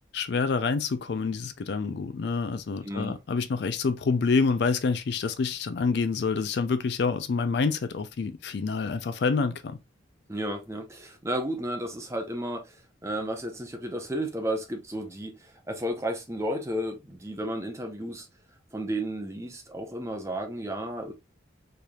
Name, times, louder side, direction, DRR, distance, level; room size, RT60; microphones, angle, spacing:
voice 1, 0.1-9.8, left 4 dB, 55° left, 0.4 m, -27 dB
voice 2, 2.8-3.1 10.3-18.3 18.7-21.1, right 1 dB, 15° right, 0.7 m, -33 dB
4.3 x 3.3 x 2.3 m
head